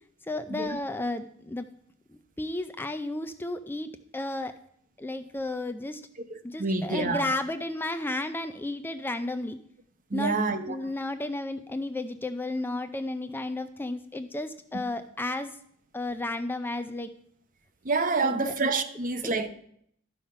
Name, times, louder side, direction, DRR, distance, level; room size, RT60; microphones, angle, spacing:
voice 1, 0.3-1.7 2.4-4.5 5.0-6.0 6.4-9.6 10.1-10.4 10.7-15.5 15.9-17.1 18.2-18.5, left 2 dB, 10° left, 0.4 m, -33 dB
voice 2, 6.3-7.3 10.1-10.8 17.8-19.5, right 3 dB, 40° right, 0.8 m, -28 dB
12.5 x 5.7 x 5.5 m
head